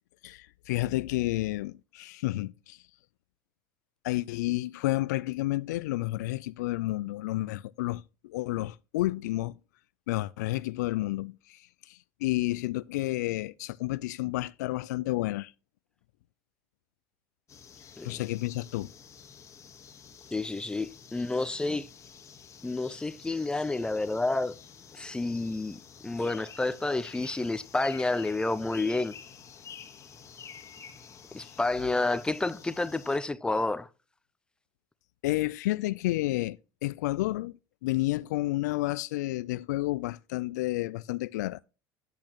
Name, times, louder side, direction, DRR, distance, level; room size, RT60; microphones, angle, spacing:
voice 1, 0.2-2.8 4.0-9.6 10.1-15.5 18.0-18.9 31.4-31.6 35.2-37.5 37.8-41.6, left 18 dB, 85° left, 0.4 m, -31 dB
sound 1, 17.5-33.2, left 7 dB, 35° left, 1.5 m, -50 dB
voice 2, 20.3-21.9 22.6-24.5 24.9-29.2 31.3-33.9, left 2 dB, 10° left, 0.6 m, -30 dB
8.7 x 8.3 x 2.9 m
supercardioid pair, 100°, 9 cm